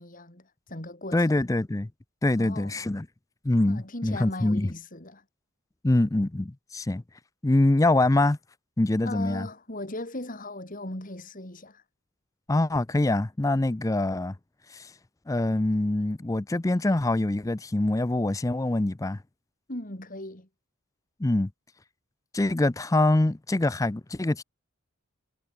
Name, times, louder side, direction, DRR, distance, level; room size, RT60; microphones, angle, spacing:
voice 1, 0.0-1.4 2.4-2.8 3.7-5.2 9.0-11.8 19.7-20.5, left 1 dB, 40° left, 4.0 m, -38 dB
voice 2, 1.1-1.9 2.2-3.1 3.4-4.7 5.8-7.0 7.4-8.4 8.8-9.5 12.5-14.3 14.7-14.9 15.3-19.2 21.2-21.5 22.3-24.4, left 2 dB, 15° left, 0.5 m, -24 dB
head